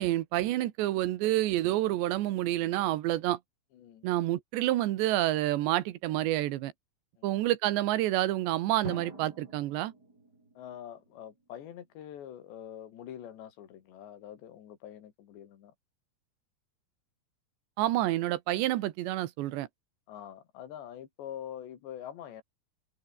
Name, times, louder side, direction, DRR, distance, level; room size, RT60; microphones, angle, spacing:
voice 1, 0.0-3.4 4.0-6.7 7.2-9.9 17.8-19.7, right 15 dB, 90° right, 3.5 m, -28 dB
voice 2, 3.7-4.1 7.2-7.5 10.6-15.7 20.1-22.4, left 10 dB, 85° left, 4.7 m, -45 dB
Drum, 8.8-11.6, right 2 dB, 20° right, 6.1 m, -45 dB
omnidirectional pair, 4.9 m